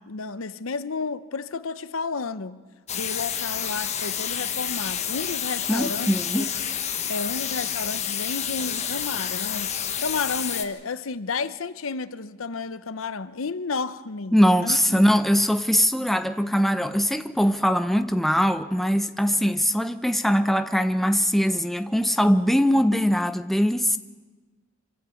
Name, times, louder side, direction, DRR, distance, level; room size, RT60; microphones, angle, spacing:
voice 1, 0.0-2.6 2.9-6.5 7.1-9.7 10.0-15.0, left 4 dB, 85° left, 0.8 m, -32 dB
sound 1, 2.9-10.6, left 8 dB, 35° left, 1.4 m, -29 dB
voice 2, 5.7-6.5 14.3-24.0, equal, ahead, 0.7 m, -21 dB
26.0 x 13.0 x 8.4 m
head